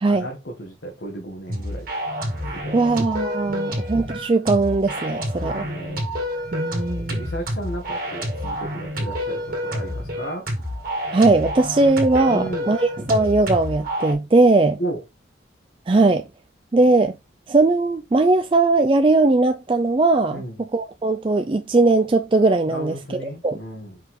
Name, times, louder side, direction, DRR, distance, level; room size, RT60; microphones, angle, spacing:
voice 1, 0.1-1.9 2.5-2.9 3.5-3.8 5.4-6.0 7.0-10.5 12.3-12.8 14.8-15.0 20.3-20.6 22.7-24.0, right 1 dB, 65° left, 1.7 m, -34 dB
sound 1, 1.5-14.1, equal, 45° right, 2.2 m, -28 dB
voice 2, 2.7-5.6 6.5-7.3 11.1-14.8 15.9-16.2 16.7-17.2 17.5-23.2 23.4-23.6, right 3 dB, 25° right, 0.4 m, -19 dB
5.5 x 4.6 x 3.7 m
head